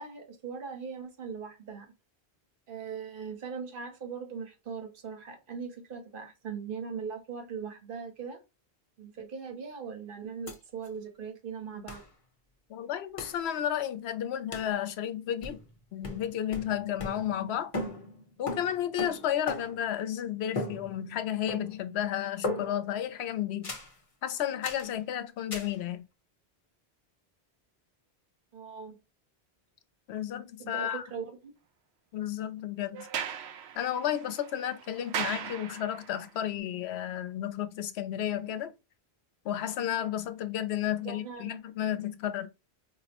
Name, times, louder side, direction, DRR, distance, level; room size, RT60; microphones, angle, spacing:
voice 1, 0.0-1.9 2.7-8.4 9.0-12.0 28.5-29.0 30.6-31.5 41.0-41.6, right 6 dB, 60° right, 1.1 m, -40 dB
sound 1, 10.5-10.6 10.8-10.9 11.9-12.1 13.2-13.4 14.5-14.8 15.4-15.8 16.0-17.5 17.7-19.9 20.6-21.2 21.5-21.9 22.4-23.0 23.6-24.0 24.6-24.9 25.5-25.8, left 2 dB, 35° left, 0.9 m, -38 dB
voice 2, 12.7-15.6 15.9-17.7 18.4-23.7 24.2-26.0 30.1-31.0 32.1-33.1 33.8-38.7 39.4-42.5, left 10 dB, 85° left, 0.8 m, -32 dB
Sliding door, 32.9-36.2, right 8 dB, 90° right, 0.9 m, -38 dB
4.4 x 2.1 x 2.8 m
omnidirectional pair, 1.1 m